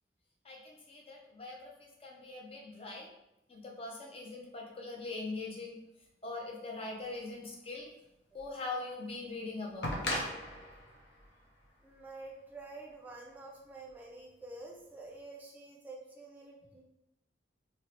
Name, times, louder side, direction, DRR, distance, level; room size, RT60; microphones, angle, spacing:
voice 1, 0.4-3.1 3.5-5.8 6.2-7.9 8.3-9.9, left 3 dB, 30° left, -1 dB, 0.6 m, -42 dB
sound 1, 8.4-8.5 9.8-12.7 13.9-14.0, left 1 dB, 70° left, 0.8 m, -38 dB
voice 2, 11.8-16.8, right 2 dB, 10° right, -2 dB, 0.5 m, -48 dB
3.2 x 2.8 x 3.2 m, 0.85 s
head